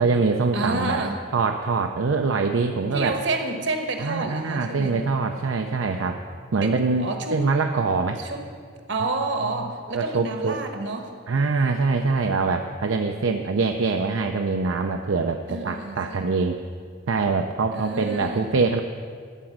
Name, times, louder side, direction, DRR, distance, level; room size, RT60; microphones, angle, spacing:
voice 1, 0.0-1.0 1.3-3.1 4.0-6.2 6.5-8.2 9.9-10.6 11.3-16.6 17.1-18.8, right 4 dB, 80° right, 5 dB, 0.5 m, -24 dB
voice 2, 0.5-1.2 2.9-5.0 6.6-6.7 7.0-7.4 8.2-8.4 8.9-11.1 15.5-16.2 17.7-18.5, right 2 dB, 60° right, 5 dB, 1.3 m, -29 dB
14.0 x 5.0 x 8.6 m, 2.1 s
head